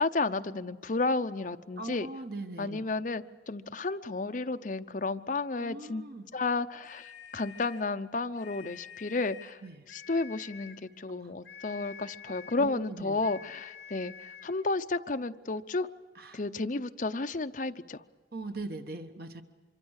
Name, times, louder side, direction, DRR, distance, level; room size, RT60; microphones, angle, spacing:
voice 1, 0.0-2.1 2.6-6.0 6.3-9.6 9.9-15.9 16.3-18.0, left 3 dB, 45° left, 8 dB, 0.7 m, -32 dB
voice 2, 1.8-2.8 5.6-6.3 9.6-9.9 11.2-11.3 12.3-13.2 16.1-16.4 18.3-19.4, right 2 dB, 55° right, 7 dB, 1.2 m, -41 dB
sound 1, 6.8-7.9 8.3-9.6 9.9-10.8 11.4-12.7 13.2-14.6, left 8 dB, 65° left, 3.3 m, -48 dB
25.5 x 23.0 x 6.5 m, 1.4 s
head